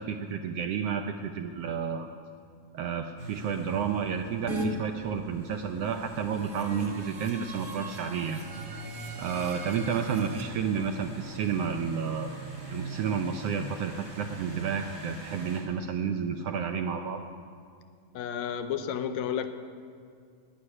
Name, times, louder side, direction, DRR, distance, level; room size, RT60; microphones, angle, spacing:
voice 1, 0.0-2.1 2.7-8.4 9.2-12.3 12.7-17.2, right 7 dB, 75° right, 5 dB, 1.4 m, -31 dB
sound 1, 3.2-15.6, right 2 dB, 25° right, 4.2 m, -42 dB
sound 2, 4.5-4.7 6.1-10.4, right 2 dB, 45° right, 1.1 m, -40 dB
voice 2, 18.1-19.5, left 8 dB, 75° left, 9 dB, 1.9 m, -31 dB
11.5 x 10.0 x 9.8 m, 2.3 s
omnidirectional pair, 3.4 m